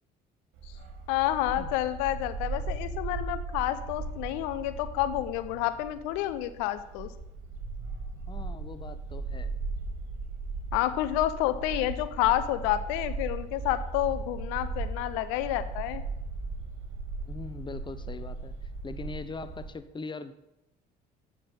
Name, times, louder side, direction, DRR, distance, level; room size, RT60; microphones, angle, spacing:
Bark, 0.5-19.7, right 3 dB, 70° right, 2.2 m, -37 dB
voice 1, 1.1-7.1 10.7-16.0, left 14 dB, 85° left, 12 dB, 0.7 m, -29 dB
voice 2, 8.3-9.6 17.2-18.5 18.8-20.3, left 3 dB, 20° left, 12 dB, 0.8 m, -41 dB
8.8 x 6.1 x 5.5 m, 0.89 s
supercardioid pair, 65°, 21 cm